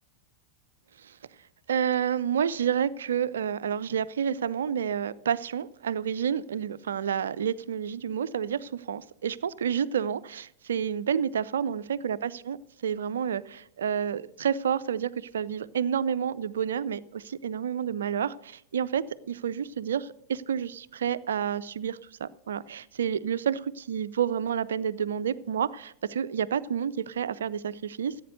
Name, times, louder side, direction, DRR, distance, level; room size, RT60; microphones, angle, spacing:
voice 1, 1.7-12.6 12.8-28.2, right 8 dB, 65° right, 16 dB, 0.5 m, -29 dB
15.0 x 8.6 x 6.6 m, 0.73 s
figure-of-eight pair, 90°, 0 cm